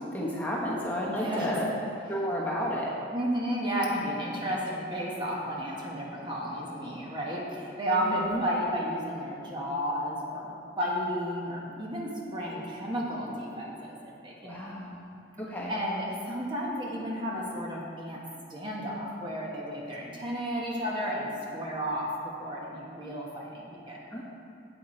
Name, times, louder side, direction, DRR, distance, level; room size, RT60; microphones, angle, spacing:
voice 1, 0.1-1.7 2.1-2.9 8.0-8.4 14.4-15.1 15.4-15.8 24.1-24.2, equal, 10° left, -5 dB, 1.2 m, -32 dB
voice 2, 1.1-1.5 3.1-10.5 10.8-14.0 14.2-14.8 15.7-18.2 18.5-24.2, equal, 25° right, -3 dB, 1.2 m, -32 dB
9.0 x 7.9 x 4.4 m, 2.5 s
head